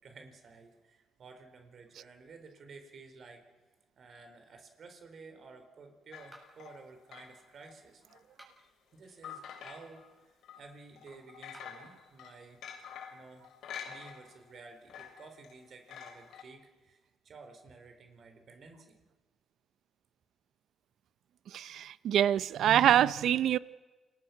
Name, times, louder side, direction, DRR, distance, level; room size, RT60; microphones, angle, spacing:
voice 1, 0.0-3.4 4.0-8.0 8.9-12.6 13.1-13.5 13.9-19.0, right 4 dB, 55° right, 4.3 m, -53 dB
sound 1, 6.1-7.8 8.1-8.2 9.2-10.1 10.4-10.6 11.0-14.6 14.9-16.4, left 8 dB, 75° left, 3.4 m, -47 dB
sound 2, 6.3-6.8 8.2-8.8 11.4-11.9 13.6-14.1, right 1 dB, 20° right, 7.9 m, -57 dB
voice 2, 21.5-23.6, right 10 dB, 75° right, 0.7 m, -25 dB
29.0 x 20.5 x 6.0 m
cardioid pair, 90°, 0 cm